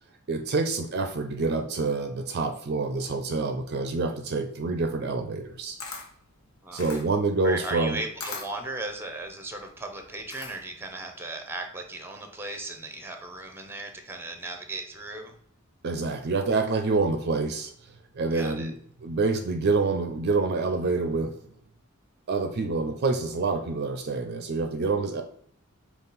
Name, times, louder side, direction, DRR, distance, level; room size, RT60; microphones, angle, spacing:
voice 1, 0.3-5.8 6.7-8.0 15.8-17.7 18.1-18.7 19.0-21.4 22.3-25.2, right 3 dB, 50° right, 6 dB, 0.4 m, -27 dB
Camera, 5.4-10.9, left 3 dB, 70° left, 1.0 m, -41 dB
voice 2, 7.4-15.4 18.3-18.7, right 2 dB, 10° right, 5 dB, 0.6 m, -36 dB
5.4 x 2.4 x 3.9 m, 0.64 s
head